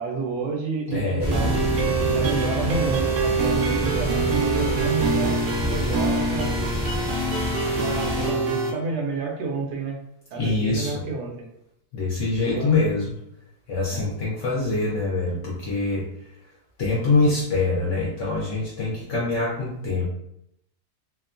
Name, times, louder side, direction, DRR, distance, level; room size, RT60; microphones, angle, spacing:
voice 1, 0.0-1.6 2.1-5.4 5.6-6.5 7.7-10.0 10.3-11.5 12.4-12.7 13.9-14.1, right 4 dB, 90° right, 1 dB, 1.1 m, -30 dB
voice 2, 0.9-1.3 10.4-11.0 11.9-13.1 13.7-16.1 16.8-20.0, left 3 dB, 65° left, -4 dB, 0.8 m, -24 dB
sound 1, 1.2-8.3, equal, 20° left, 0.3 m, -28 dB
sound 2, 1.3-8.7, right 3 dB, 65° right, 0.8 m, -25 dB
2.9 x 2.1 x 2.4 m, 0.76 s
omnidirectional pair, 1.6 m